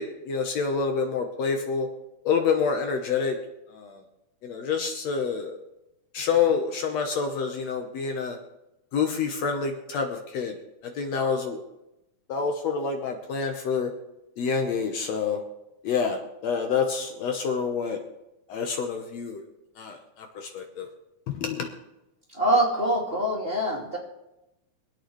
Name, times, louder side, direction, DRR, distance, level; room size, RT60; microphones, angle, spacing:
voice 1, 0.0-1.9 2.2-3.4 3.7-4.0 4.4-5.5 6.1-8.4 8.9-10.5 10.8-11.6 12.3-13.9 14.4-15.4 15.8-18.0 18.5-19.4 19.8-20.9 21.3-21.7, left 5 dB, 70° left, 4 dB, 2.1 m, -27 dB
voice 2, 22.3-24.0, right 1 dB, 20° right, -4 dB, 2.4 m, -24 dB
25.0 x 8.6 x 3.2 m, 0.91 s
omnidirectional pair, 3.5 m